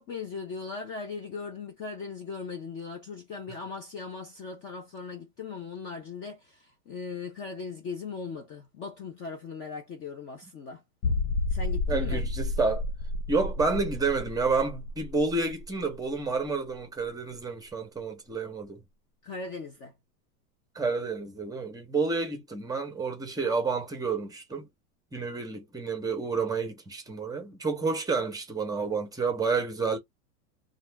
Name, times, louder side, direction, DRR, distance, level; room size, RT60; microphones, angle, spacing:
voice 1, 0.0-10.8 11.5-12.2 19.2-19.9, left 4 dB, 25° left, 0.5 m, -39 dB
sound 1, 11.0-16.5 16.8-16.9 17.4-17.5, left 2 dB, 90° left, 0.7 m, -31 dB
voice 2, 11.9-12.8 13.3-18.8 20.7-24.7 25.1-30.0, right 4 dB, 10° right, 0.7 m, -29 dB
2.3 x 2.3 x 3.3 m
hypercardioid pair, 130°, 46 cm